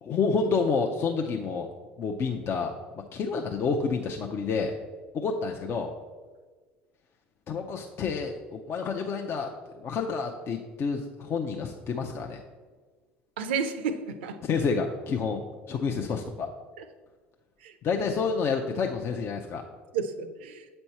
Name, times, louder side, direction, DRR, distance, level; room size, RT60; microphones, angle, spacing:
voice 1, 0.0-1.7 2.0-2.7 3.1-4.7 5.1-5.9 7.5-9.5 9.8-12.4 14.4-15.4 15.7-16.5 17.8-19.6, left 5 dB, 45° left, 2 dB, 0.6 m, -29 dB
voice 2, 13.4-14.4 16.8-16.9 17.6-18.0 19.9-20.7, right 5 dB, 75° right, 10 dB, 0.5 m, -32 dB
8.0 x 4.4 x 4.2 m, 1.4 s
hypercardioid pair, 65°, 6 cm